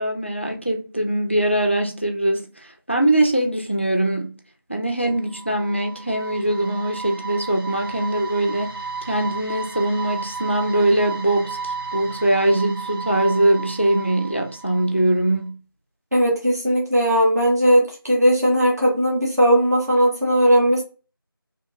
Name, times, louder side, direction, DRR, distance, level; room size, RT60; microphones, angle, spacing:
voice 1, 0.0-4.3 4.7-8.8 9.1-15.6, right 1 dB, 30° left, 0.4 m, -22 dB
sound 1, 5.0-15.1, right 4 dB, 70° right, 1.3 m, -34 dB
voice 2, 16.1-20.8, equal, 45° right, 1.0 m, -18 dB
2.7 x 2.7 x 2.6 m
figure-of-eight pair, 175°, 12 cm